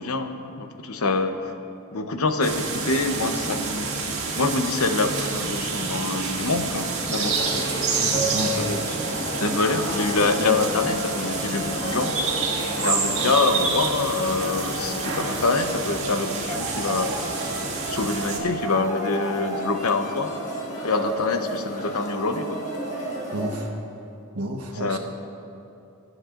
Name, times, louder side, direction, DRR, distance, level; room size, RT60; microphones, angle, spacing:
voice 1, 0.0-1.4 1.9-3.9 4.3-7.4 8.5-8.8 9.4-12.2 12.8-17.1 17.8-20.3 20.8-22.6 24.7-25.0, left 3 dB, 80° left, 7 dB, 0.8 m, -25 dB
sound 1, 2.4-18.4, right 4 dB, 65° right, 1.9 m, -28 dB
sound 2, 7.1-23.6, equal, 35° left, 1.5 m, -32 dB
voice 2, 7.9-8.5 23.3-23.7 24.3-25.0, right 1 dB, 85° right, 1 dB, 1.3 m, -30 dB
sound 3, 16.5-17.7 18.6-20.1 20.8-22.0 22.7-23.9, right 2 dB, 15° right, 0.9 m, -35 dB
22.5 x 9.4 x 2.5 m, 2.8 s
head